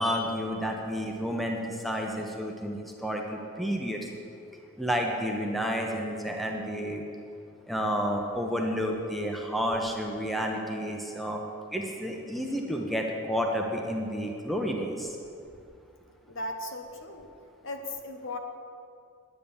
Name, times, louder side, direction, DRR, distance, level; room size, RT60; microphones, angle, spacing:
voice 1, 0.0-4.1 4.8-7.0 7.7-11.4 11.7-15.2, equal, ahead, 1 dB, 1.0 m, -30 dB
voice 2, 16.3-17.3 17.6-18.4, left 1 dB, 60° left, 4 dB, 1.2 m, -37 dB
11.0 x 9.6 x 7.1 m, 2.5 s
head